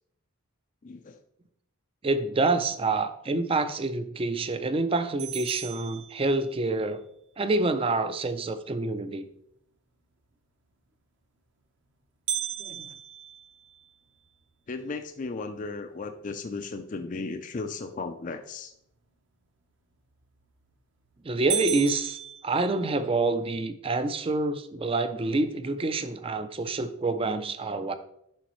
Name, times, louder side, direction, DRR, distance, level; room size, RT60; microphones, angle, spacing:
voice 1, 0.8-1.2 14.7-18.7, left 3 dB, 35° left, 7 dB, 0.4 m, -35 dB
voice 2, 2.0-7.0 7.4-9.3 12.6-12.9 21.2-27.9, right 3 dB, 25° right, 11 dB, 0.4 m, -27 dB
sound 1, 5.2-6.8 12.3-14.4 14.9-15.0 15.5-15.6 16.3-16.6 20.2-20.6 21.0-21.1 21.5-23.2, right 10 dB, 55° right, 0.9 m, -35 dB
10.0 x 5.9 x 3.1 m, 0.76 s
head